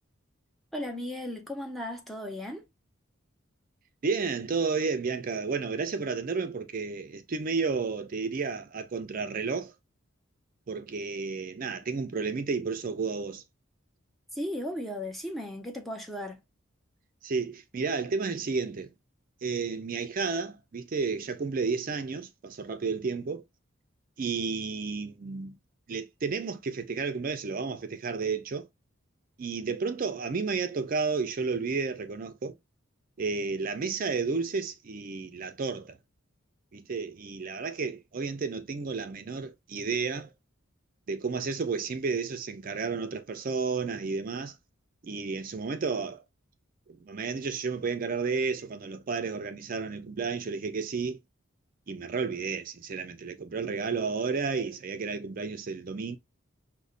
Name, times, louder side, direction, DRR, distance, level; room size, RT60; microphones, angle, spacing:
voice 1, 0.7-2.6 14.3-16.4, left 1 dB, ahead, 0.6 m, -36 dB
voice 2, 4.0-9.7 10.7-13.4 17.2-18.9 19.4-23.4 24.2-25.6 25.9-28.7 29.4-32.5 33.2-36.0 36.7-40.3 41.1-44.6 45.0-46.2 47.0-51.2 51.9-56.2, right 4 dB, 45° right, 0.4 m, -32 dB
5.2 x 2.1 x 2.4 m
head